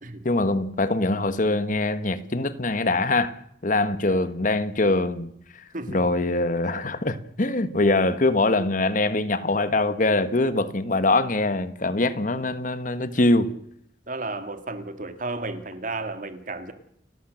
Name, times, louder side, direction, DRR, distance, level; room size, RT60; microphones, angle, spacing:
voice 1, 0.2-3.3 3.6-5.3 5.9-13.5, left 2 dB, 50° left, 1.3 m, -23 dB
voice 2, 14.1-16.7, right 2 dB, 50° right, 2.1 m, -33 dB
30.0 x 12.0 x 7.8 m
head